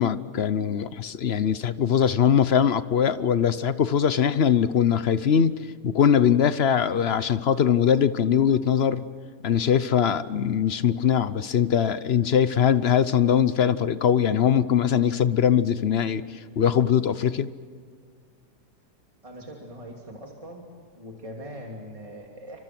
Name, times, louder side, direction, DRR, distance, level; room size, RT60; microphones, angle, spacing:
voice 1, 0.0-5.5 5.8-9.0 9.4-16.2 16.6-17.5, left 8 dB, 50° left, 14 dB, 0.8 m, -21 dB
voice 2, 19.2-20.6 20.9-22.6, equal, 20° right, 0 dB, 2.9 m, -41 dB
30.0 x 25.0 x 6.0 m, 2.1 s
omnidirectional pair, 1.9 m